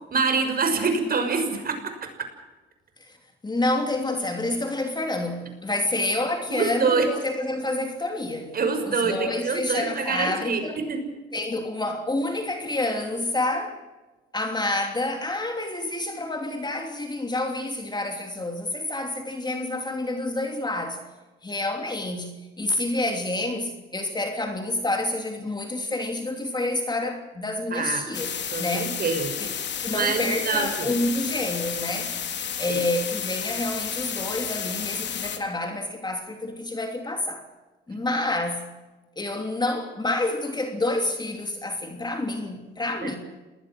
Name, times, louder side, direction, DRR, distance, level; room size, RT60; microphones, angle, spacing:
voice 1, 0.1-1.9 6.5-7.1 8.5-10.6 10.9-11.0 27.7-28.0 28.5-29.4 29.9-30.9 32.7-32.8 43.0-43.1, right 4 dB, 50° right, 7 dB, 6.2 m, -25 dB
voice 2, 3.4-8.5 8.8-10.8 11.3-13.8 14.3-21.1 21.4-28.9 29.4-29.5 29.8-32.2 32.6-37.4 37.9-38.6 39.2-43.2, left 2 dB, 20° left, 4 dB, 3.1 m, -28 dB
sound 1, 28.1-35.4, left 8 dB, 60° left, 3.2 m, -31 dB
28.0 x 20.5 x 6.3 m, 1.2 s
cardioid pair, 90°, 20 cm